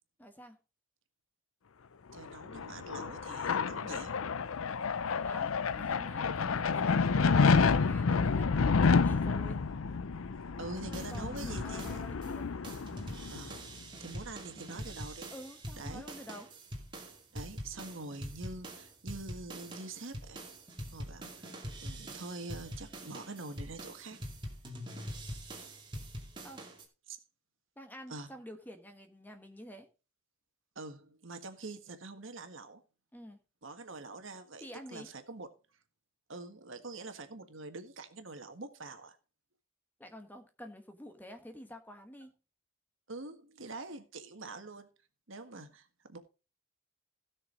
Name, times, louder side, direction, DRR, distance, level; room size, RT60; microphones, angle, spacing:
voice 1, 0.2-0.6 5.1-9.6 10.8-12.5 15.3-16.5 26.4-26.7 27.8-29.9 33.1-33.4 34.6-35.1 40.0-42.3, equal, 10° left, 1.2 m, -49 dB
voice 2, 2.1-4.1 7.2-8.0 10.6-12.0 13.3-13.6 14.0-15.3 15.8-16.1 17.3-20.4 20.9-21.5 21.8-24.2 27.1-27.2 28.1-28.3 30.7-32.8 33.6-35.5 36.3-39.2 43.1-44.9 45.3-46.2, right 3 dB, 70° right, 1.6 m, -45 dB
sound 1, 2.3-13.6, left 5 dB, 90° left, 0.6 m, -29 dB
sound 2, 10.9-12.3 12.6-26.8, equal, 20° right, 2.3 m, -44 dB
16.5 x 6.5 x 3.8 m
head